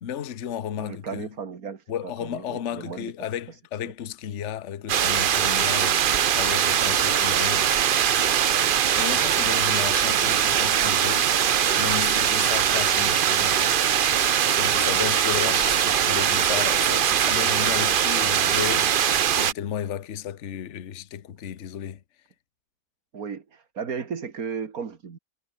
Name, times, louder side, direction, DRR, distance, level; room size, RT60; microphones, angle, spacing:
voice 1, 0.0-1.3 1.9-7.7 9.0-11.3 11.8-13.7 14.5-22.0, left 9 dB, 50° left, 1.2 m, -33 dB
voice 2, 0.7-3.1 3.5-3.6 17.9-18.0 23.1-25.2, right 6 dB, 55° right, 2.3 m, -35 dB
sound 1, 4.9-19.5, right 9 dB, 80° right, 0.4 m, -21 dB
omnidirectional pair, 1.8 m